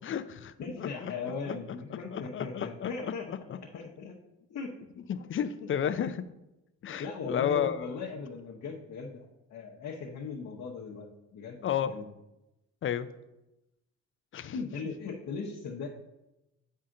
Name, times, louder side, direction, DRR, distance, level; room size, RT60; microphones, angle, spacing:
voice 1, 0.0-1.1 1.4-1.6 2.1-3.6 5.1-6.2 6.8-7.9 11.6-11.9 12.8-13.1 14.3-14.6, left 9 dB, 45° left, 13 dB, 0.5 m, -32 dB
voice 2, 0.6-4.2 4.5-4.7 6.8-12.0 14.5-15.9, left 4 dB, 60° left, -1 dB, 1.0 m, -39 dB
7.4 x 5.6 x 3.7 m, 0.94 s
cardioid pair, 90°, 30 cm